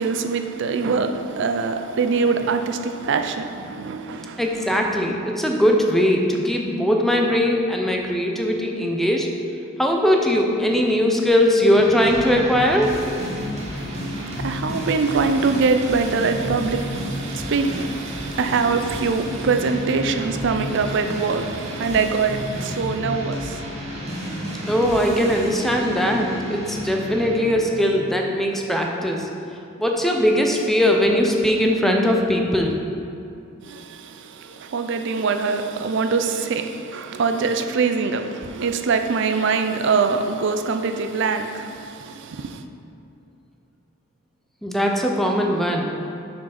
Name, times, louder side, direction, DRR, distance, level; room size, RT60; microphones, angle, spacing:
voice 1, 0.0-4.4 13.7-24.7 33.6-42.6, right 4 dB, 60° right, 0.5 m, -24 dB
voice 2, 4.4-9.3 9.8-12.9 24.7-29.3 29.8-32.7 44.6-45.8, equal, ahead, 0.6 m, -20 dB
sound 1, 11.7-27.7, equal, 35° right, 1.3 m, -31 dB
6.0 x 4.6 x 5.8 m
head